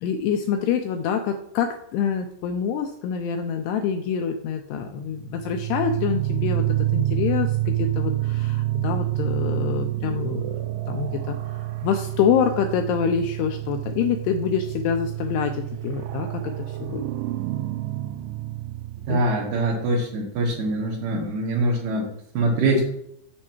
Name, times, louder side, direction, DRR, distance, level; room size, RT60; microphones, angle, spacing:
voice 1, 0.0-10.5 10.9-17.0 19.1-19.2, left 7 dB, 85° left, 5 dB, 2.4 m, -26 dB
sound 1, 5.2-19.8, right 15 dB, 85° right, 2.4 m, -28 dB
voice 2, 19.1-22.1 22.3-22.9, right 2 dB, 65° right, -3 dB, 3.1 m, -23 dB
7.4 x 7.4 x 4.4 m, 0.72 s
omnidirectional pair, 5.4 m